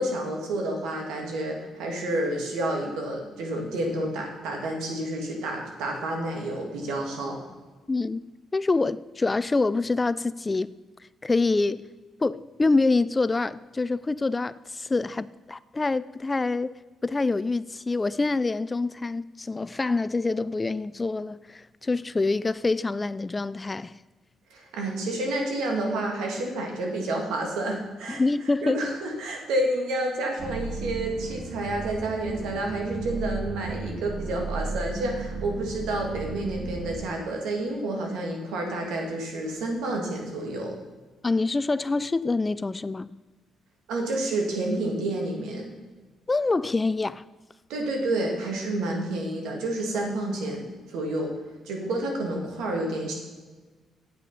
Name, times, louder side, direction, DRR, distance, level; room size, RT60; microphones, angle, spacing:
voice 1, 0.0-7.4 24.5-28.2 28.6-40.7 43.9-45.7 47.7-51.3 51.6-53.1, right 1 dB, 85° right, 2.2 m, -29 dB
voice 2, 7.9-8.2 8.5-10.7 11.2-11.8 12.2-16.8 17.0-23.9 28.2-28.9 41.2-43.1 46.3-47.2, left 3 dB, 25° left, 0.3 m, -26 dB
sound 1, 30.4-37.1, right 3 dB, 60° right, 1.6 m, -34 dB
8.4 x 7.5 x 5.6 m
cardioid pair, 90°, 0 cm